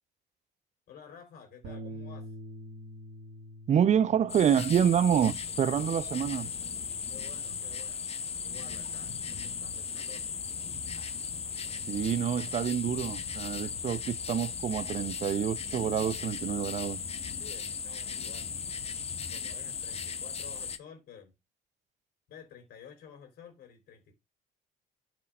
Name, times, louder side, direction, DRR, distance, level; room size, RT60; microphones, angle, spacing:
voice 1, 0.9-2.3 7.1-10.3 17.4-18.5 19.3-21.3 22.3-24.1, left 7 dB, 70° left, 3.8 m, -51 dB
Bass guitar, 1.6-7.9, equal, 85° right, 1.5 m, -47 dB
voice 2, 3.7-6.5 11.9-17.0, right 9 dB, 45° right, 0.5 m, -27 dB
sound 1, 4.3-20.8, left 6 dB, 40° left, 1.0 m, -37 dB
12.0 x 6.0 x 2.4 m
supercardioid pair, 85°, 17 cm